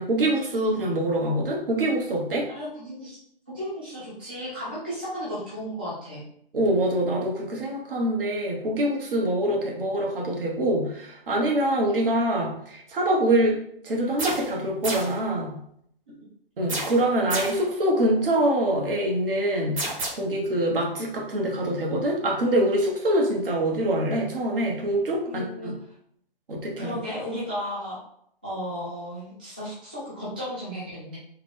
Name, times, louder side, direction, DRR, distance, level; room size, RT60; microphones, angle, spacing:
voice 1, 0.0-2.5 6.5-13.6 13.8-15.6 16.6-19.8 20.2-25.7 26.5-27.0, right 1 dB, 65° right, -1 dB, 1.3 m, -24 dB
voice 2, 2.5-3.2 3.5-6.2 25.3-25.7 26.8-28.0 28.4-31.2, equal, 10° right, -10 dB, 0.3 m, -34 dB
sound 1, 14.2-14.6 14.8-15.2 16.7-17.7 19.8-20.1, right 2 dB, 35° right, 1.2 m, -30 dB
3.6 x 2.3 x 3.4 m, 0.70 s
hypercardioid pair, 150°, 30 cm